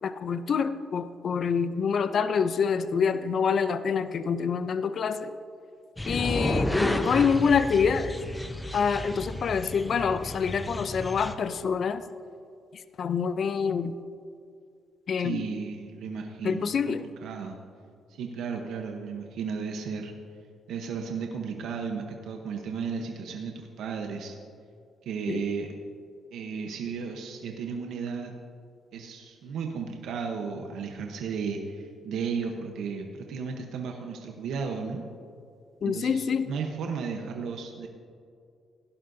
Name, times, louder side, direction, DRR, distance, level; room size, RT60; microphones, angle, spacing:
voice 1, 0.0-5.3 6.1-8.1 8.7-12.0 13.0-13.9 15.1-15.4 16.4-17.0 25.3-25.4 35.8-36.5, left 6 dB, 55° left, 12 dB, 0.5 m, -26 dB
sound 1, 6.0-11.3, left 1 dB, 10° left, 0.7 m, -31 dB
voice 2, 15.2-17.6 18.2-20.1 20.7-24.4 25.0-25.7 26.3-28.3 28.9-35.0 35.8-37.9, right 5 dB, 80° right, 3 dB, 1.0 m, -34 dB
17.5 x 11.0 x 2.7 m, 2.4 s
cardioid pair, 90°, 0 cm